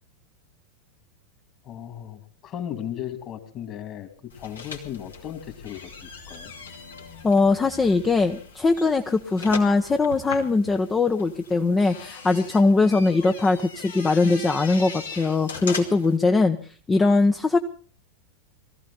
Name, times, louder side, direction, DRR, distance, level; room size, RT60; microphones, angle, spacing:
voice 1, 1.6-6.5, left 10 dB, 35° left, 8 dB, 2.7 m, -36 dB
sound 1, 4.3-16.2, left 5 dB, 70° left, 2.6 m, -39 dB
voice 2, 7.2-16.6 16.9-17.6, left 3 dB, 15° left, 6 dB, 0.9 m, -21 dB
21.5 x 15.0 x 4.2 m, 0.43 s
figure-of-eight pair, 90°, 0 cm